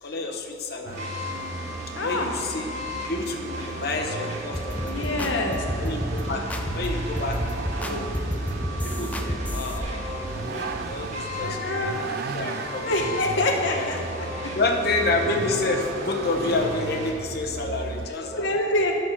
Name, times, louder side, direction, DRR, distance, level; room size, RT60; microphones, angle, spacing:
voice 1, 0.0-1.1 2.0-5.4 5.8-7.4 7.9-8.1 8.7-12.0 12.3-12.9 13.2-13.9 14.6-18.5, left 3 dB, 55° left, 2 dB, 0.9 m, -29 dB
sound 1, 0.9-17.1, equal, 35° right, 1.6 m, -36 dB
Vehicle, 0.9-18.1, right 4 dB, 50° right, 0.4 m, -36 dB
voice 2, 2.0-2.3 4.9-5.6 11.4-12.0 12.8-14.3 18.4-18.9, left 2 dB, 80° left, 2 dB, 0.7 m, -26 dB
sound 2, 4.5-9.8, equal, 10° left, 0.5 m, -30 dB
12.5 x 4.2 x 5.7 m, 2.6 s
head